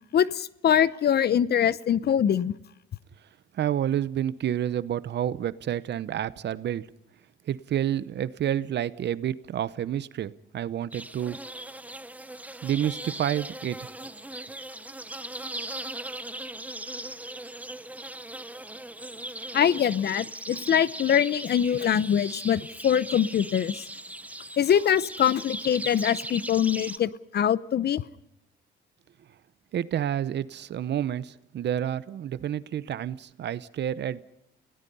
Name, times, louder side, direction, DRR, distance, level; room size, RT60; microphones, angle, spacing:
voice 1, 0.1-2.5 19.5-23.8 24.6-28.0, left 9 dB, 55° left, 0.8 m, -23 dB
voice 2, 3.5-6.9 7.5-11.4 12.6-13.8 29.7-34.2, right 10 dB, 60° right, 0.8 m, -29 dB
sound 1, 10.9-27.0, right 1 dB, 5° right, 0.9 m, -39 dB
29.0 x 17.5 x 5.5 m
cardioid pair, 90°, 20 cm